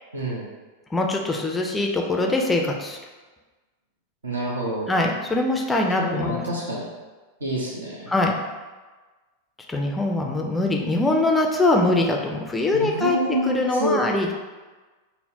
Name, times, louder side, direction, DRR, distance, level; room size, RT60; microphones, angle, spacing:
voice 1, 0.1-0.4 4.2-4.9 6.0-6.9 7.4-8.1 12.7-14.0, right 1 dB, 70° right, -3 dB, 0.8 m, -27 dB
voice 2, 0.9-3.0 4.9-6.4 8.1-8.3 9.7-13.2 13.5-14.3, left 2 dB, 10° left, 1 dB, 0.4 m, -22 dB
5.4 x 2.1 x 2.8 m, 1.3 s
figure-of-eight pair, 90°, 0 cm